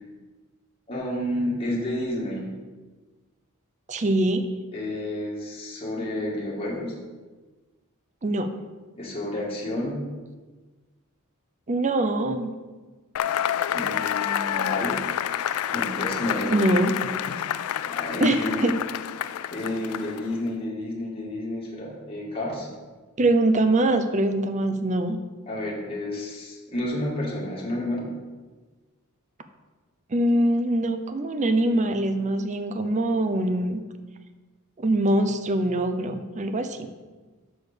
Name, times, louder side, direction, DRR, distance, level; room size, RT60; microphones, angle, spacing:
voice 1, 0.9-2.5 4.7-6.9 8.9-10.1 13.7-15.0 15.6-17.5 17.8-18.6 19.5-22.7 25.5-28.1, left 1 dB, 25° left, -5 dB, 2.0 m, -30 dB
voice 2, 3.9-4.4 8.2-8.5 11.7-12.5 16.5-16.9 18.2-18.8 23.2-25.2 30.1-33.8 34.8-36.9, right 1 dB, 35° right, 8 dB, 0.6 m, -23 dB
Cheering / Applause / Crowd, 13.2-20.4, left 10 dB, 85° left, 0.3 m, -28 dB
6.3 x 5.0 x 6.7 m, 1.3 s
head